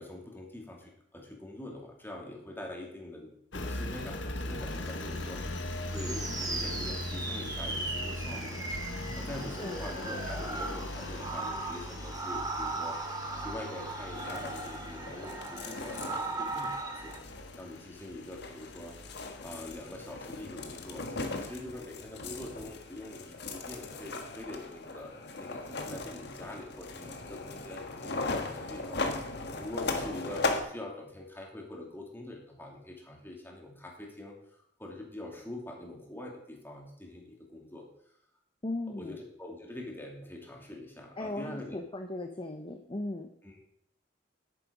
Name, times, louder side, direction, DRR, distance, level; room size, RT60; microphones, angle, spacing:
voice 1, 0.0-13.0 13.4-17.2 17.6-18.9 19.4-37.9 38.9-42.0 43.4-43.6, left 1 dB, 10° left, 0 dB, 2.7 m, -44 dB
Engine, 3.5-21.5, left 1 dB, 90° left, 1.3 m, -41 dB
sound 1, 5.9-17.2, right 3 dB, 20° right, 1.4 m, -38 dB
sound 2, 14.1-30.6, left 3 dB, 65° left, 1.5 m, -38 dB
voice 2, 38.6-39.2 41.2-43.3, left 2 dB, 30° left, 4 dB, 0.8 m, -37 dB
10.0 x 9.4 x 5.2 m, 0.71 s
head